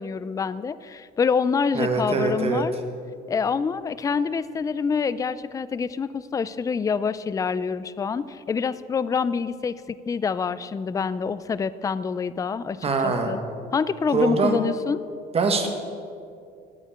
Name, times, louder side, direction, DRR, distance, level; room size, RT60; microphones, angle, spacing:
voice 1, 0.0-2.7 3.3-13.4 13.7-15.1, left 5 dB, 20° left, 16 dB, 0.4 m, -26 dB
voice 2, 1.7-2.6 12.8-13.4 14.1-14.6 15.3-15.7, right 4 dB, 35° right, 4 dB, 1.5 m, -23 dB
9.5 x 8.3 x 8.6 m, 2.4 s
cardioid pair, 110°, 17 cm